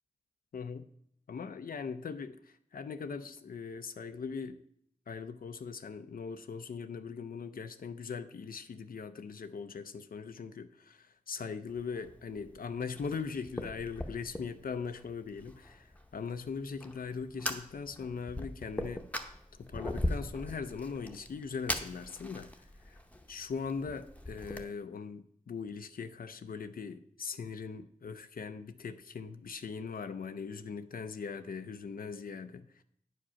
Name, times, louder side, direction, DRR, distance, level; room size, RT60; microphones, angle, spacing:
voice 1, 0.5-0.9 1.3-4.6 5.1-19.1 19.5-23.0 23.3-32.8, left 5 dB, 90° left, 10 dB, 0.6 m, -40 dB
Fire, 11.7-24.6, left 1 dB, 10° left, 0.9 m, -41 dB
9.7 x 5.1 x 5.7 m, 0.68 s
wide cardioid pair, 90°, 14 cm